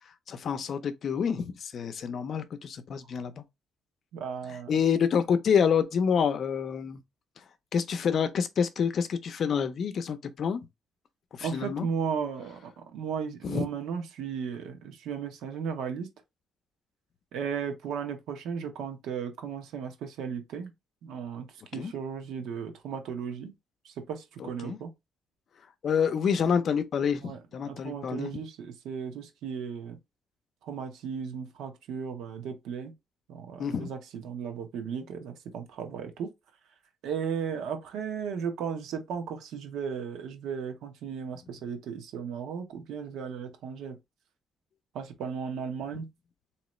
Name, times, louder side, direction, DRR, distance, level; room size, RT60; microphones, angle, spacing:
voice 1, 0.3-3.4 4.5-7.0 7.7-10.7 11.3-11.9 13.4-13.7 21.8-21.9 24.4-24.8 25.8-28.3 33.6-33.9, left 7 dB, 45° left, 0.5 m, -28 dB
voice 2, 4.1-4.7 11.4-16.1 17.3-20.7 21.0-21.5 21.7-23.5 23.8-24.9 27.2-27.4 27.6-30.0 30.6-32.9 33.3-36.3 37.0-43.9 44.9-46.1, right 7 dB, 90° right, 1.0 m, -35 dB
3.9 x 3.0 x 3.1 m
cardioid pair, 155°, 0 cm